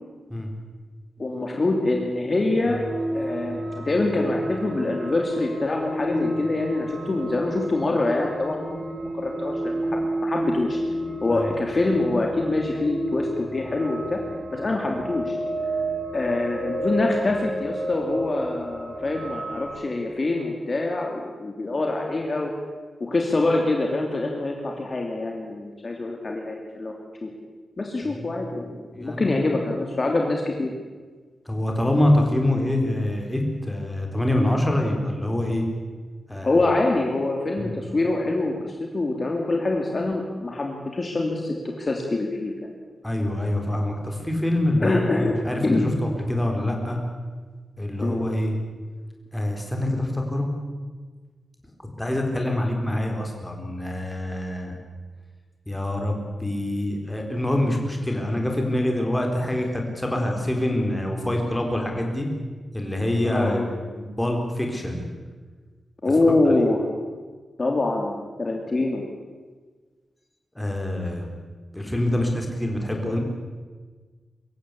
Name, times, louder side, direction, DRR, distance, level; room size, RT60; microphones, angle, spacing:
voice 1, 1.2-2.8 3.1-8.6 9.1-10.8 11.2-14.2 14.5-15.4 16.1-22.5 23.0-26.9 27.2-27.3 27.8-30.7 36.4-42.7 44.8-45.4 45.6-45.9 48.0-48.2 63.2-63.7 66.0-66.9 67.6-69.1, left 2 dB, 30° left, 1 dB, 2.7 m, -25 dB
sound 1, 2.6-19.7, right 1 dB, 45° right, 5.5 m, -31 dB
voice 2, 28.1-28.4 28.9-29.5 31.5-35.7 36.3-36.6 37.6-37.8 43.0-47.0 47.8-48.5 49.3-50.5 52.0-54.8 55.7-62.3 62.7-63.6 64.0-65.1 70.6-71.3 71.7-73.2, left 1 dB, 5° left, 2 dB, 4.0 m, -25 dB
24.5 x 15.0 x 8.4 m, 1.4 s
wide cardioid pair, 145°, 0 cm